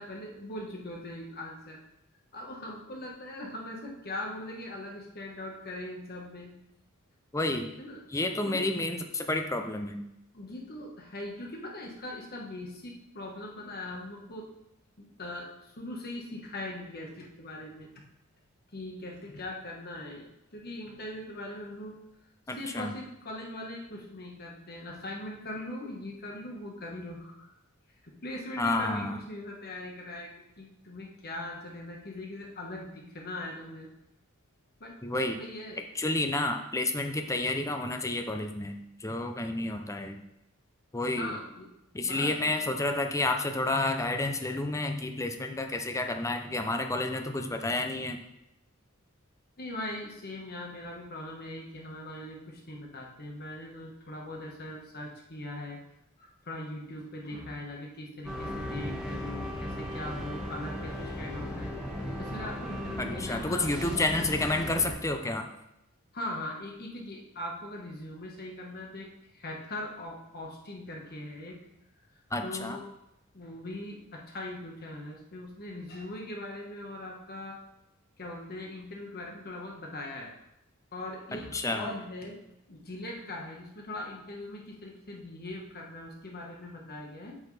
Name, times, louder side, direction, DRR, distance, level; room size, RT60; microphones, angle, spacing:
voice 1, 0.0-1.8 2.3-6.6 7.8-8.0 8.4-8.7 10.3-14.5 15.0-17.9 18.7-22.0 22.5-27.5 28.0-33.9 34.8-35.0 35.3-35.8 41.2-41.7 42.0-42.7 46.0-46.1 49.6-55.8 56.2-61.7 62.2-64.2 66.1-71.6 72.4-72.9 73.3-77.6 78.2-80.3 80.9-82.4 82.7-87.4, left 1 dB, 45° left, 0 dB, 1.4 m, -40 dB
voice 2, 7.3-7.7 8.1-10.0 22.5-22.9 28.6-29.1 35.0-35.4 36.0-40.2 40.9-41.3 41.9-48.2 63.0-65.5 72.3-72.8 81.3-81.9, left 2 dB, 15° left, 5 dB, 0.6 m, -30 dB
sound 1, 58.2-64.9, equal, 5° right, 1.6 m, -36 dB
8.5 x 6.3 x 3.3 m, 0.85 s
head